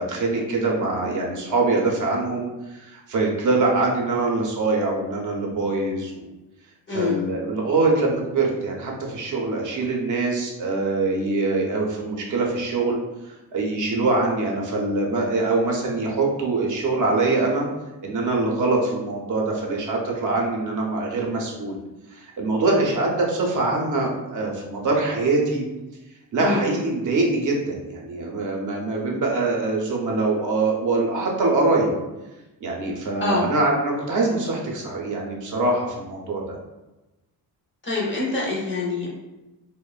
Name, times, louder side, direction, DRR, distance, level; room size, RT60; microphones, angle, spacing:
voice 1, 0.0-6.3 6.9-13.0 13.3-17.7 18.0-21.8 22.1-25.6 26.3-31.9 32.6-36.6, right 3 dB, 50° right, -1 dB, 0.5 m, -23 dB
voice 2, 37.8-39.1, left 3 dB, 30° left, -4 dB, 0.5 m, -25 dB
2.9 x 2.0 x 2.3 m, 1.0 s
cardioid pair, 165°, 38 cm